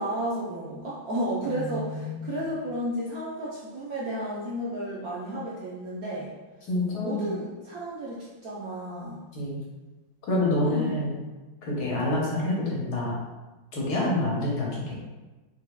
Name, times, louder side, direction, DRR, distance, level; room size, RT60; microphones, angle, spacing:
voice 1, 0.0-6.3 7.0-9.2 10.6-10.9, right 1 dB, 65° right, -6 dB, 0.9 m, -32 dB
voice 2, 1.5-2.4 6.7-7.3 9.3-9.6 10.3-11.1 11.6-13.1 13.7-14.9, left 1 dB, 65° left, -4 dB, 1.3 m, -27 dB
4.8 x 3.5 x 2.2 m, 1.2 s
omnidirectional pair, 2.1 m